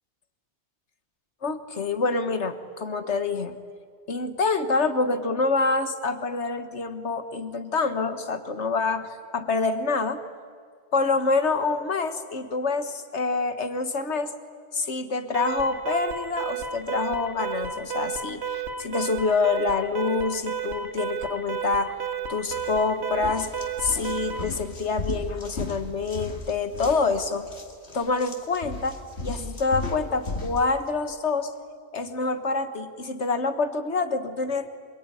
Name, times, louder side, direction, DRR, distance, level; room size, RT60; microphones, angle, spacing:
voice 1, 1.4-3.6 4.1-10.2 10.9-14.3 14.7-22.0 22.3-27.5 27.9-31.5 31.9-34.7, left 4 dB, 90° left, 9 dB, 1.8 m, -26 dB
Alarm, 15.3-24.6, right 6 dB, 70° right, 2.2 m, -32 dB
sound 1, 22.5-22.7 23.1-30.6, left 2 dB, 75° left, 2.7 m, -35 dB
25.5 x 22.5 x 9.9 m, 2.1 s
omnidirectional pair, 1.1 m